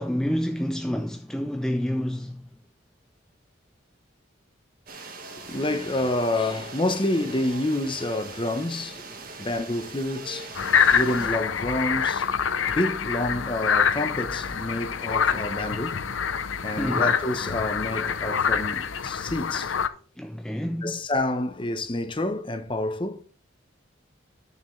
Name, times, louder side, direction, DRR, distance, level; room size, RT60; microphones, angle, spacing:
voice 1, 0.0-2.4 16.8-17.1 20.2-21.0, equal, 5° left, 0.3 m, -28 dB
sound 1, 4.9-11.3, right 3 dB, 45° right, 1.5 m, -41 dB
voice 2, 5.4-12.3 12.7-16.2 16.6-19.7 20.8-23.2, left 1 dB, 25° left, 0.8 m, -28 dB
sound 2, 10.5-19.9, left 7 dB, 80° left, 0.6 m, -26 dB
12.0 x 6.8 x 3.2 m
head